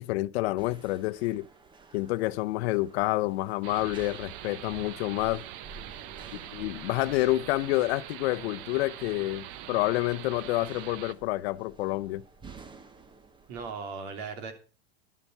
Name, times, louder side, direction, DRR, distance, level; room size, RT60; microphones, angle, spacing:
voice 1, 0.0-1.5 1.9-5.4 6.3-12.2, left 18 dB, 70° left, 0.7 m, -28 dB
sound 1, 0.6-13.7, right 4 dB, 15° right, 1.0 m, -52 dB
sound 2, 3.6-11.1, right 13 dB, 55° right, 0.8 m, -43 dB
voice 2, 5.7-6.4 13.5-14.5, right 5 dB, 70° right, 3.1 m, -39 dB
11.0 x 7.1 x 6.7 m
supercardioid pair, 145°, 32 cm